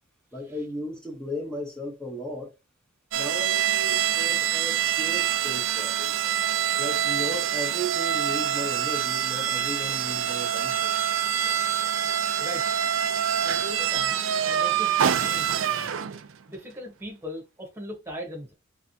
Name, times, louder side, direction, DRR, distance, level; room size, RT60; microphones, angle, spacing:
voice 1, 0.3-2.5 3.1-6.1 6.8-10.9, equal, 5° left, 1.0 m, -35 dB
sound 1, 3.1-16.4, right 9 dB, 75° right, 0.4 m, -25 dB
voice 2, 12.4-13.0 13.4-15.9 16.5-18.5, equal, 15° right, 1.3 m, -39 dB
3.4 x 3.4 x 2.7 m
head